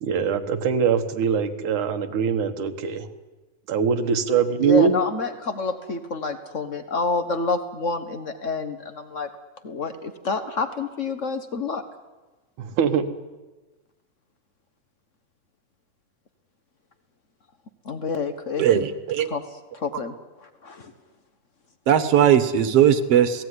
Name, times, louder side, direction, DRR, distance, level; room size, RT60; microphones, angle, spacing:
voice 1, 0.0-3.1 3.7-4.9 12.6-13.1, right 7 dB, 85° right, 6 dB, 3.0 m, -22 dB
voice 2, 4.6-9.3 9.6-11.8 17.8-18.6 19.3-19.4 19.7-20.1 20.4-20.9, left 4 dB, 70° left, 9 dB, 0.7 m, -28 dB
voice 3, 18.6-19.3 21.9-23.4, right 9 dB, 60° right, 11 dB, 2.2 m, -18 dB
27.0 x 18.0 x 9.8 m, 1.2 s
omnidirectional pair, 3.4 m